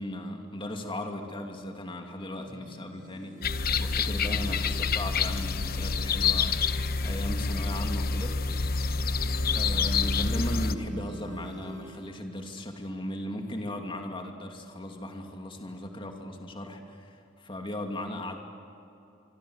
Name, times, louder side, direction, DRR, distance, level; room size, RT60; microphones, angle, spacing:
voice 1, 0.0-6.6 7.0-8.3 9.5-18.4, left 1 dB, 25° left, 3 dB, 2.6 m, -37 dB
sound 1, 2.5-12.1, right 1 dB, 45° right, 6.1 m, -47 dB
sound 2, 3.4-10.7, left 4 dB, 50° left, 1.0 m, -27 dB
26.0 x 25.5 x 8.1 m, 2.8 s
head